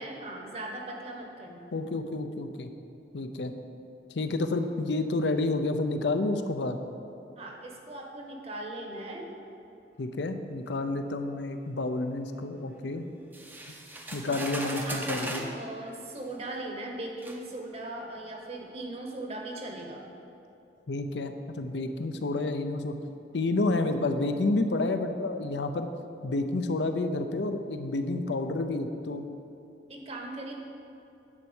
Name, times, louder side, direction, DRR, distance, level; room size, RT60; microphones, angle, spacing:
voice 1, 0.0-1.7 7.4-9.3 14.2-20.1 29.9-30.5, right 1 dB, 35° right, 1 dB, 1.1 m, -39 dB
voice 2, 1.7-2.7 3.1-3.5 4.1-6.8 10.0-13.1 14.1-15.5 20.9-22.9 23.3-25.9 26.2-29.3, left 2 dB, 85° left, 7 dB, 0.6 m, -29 dB
sound 1, 13.3-15.6 16.5-16.6 17.2-17.4, right 1 dB, 10° right, 0.6 m, -38 dB
9.8 x 4.6 x 7.1 m, 2.8 s
head